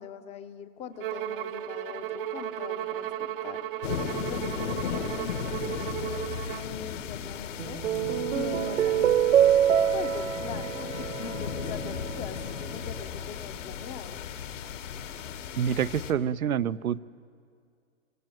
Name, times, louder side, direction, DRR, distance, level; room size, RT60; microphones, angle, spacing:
voice 1, 0.0-3.6 4.3-7.8 8.3-9.4 9.9-14.2, left 7 dB, 15° left, 10 dB, 1.0 m, -41 dB
Bowed string instrument, 1.0-6.7, right 12 dB, 40° right, 0.9 m, -35 dB
sound 1, 3.8-16.1, left 8 dB, 60° left, 2.6 m, -36 dB
sound 2, 7.6-12.2, right 9 dB, 65° right, 1.4 m, -25 dB
voice 2, 15.6-17.0, right 8 dB, 85° right, 15 dB, 0.9 m, -27 dB
25.0 x 25.0 x 9.1 m, 2.3 s
hypercardioid pair, 150°, 42 cm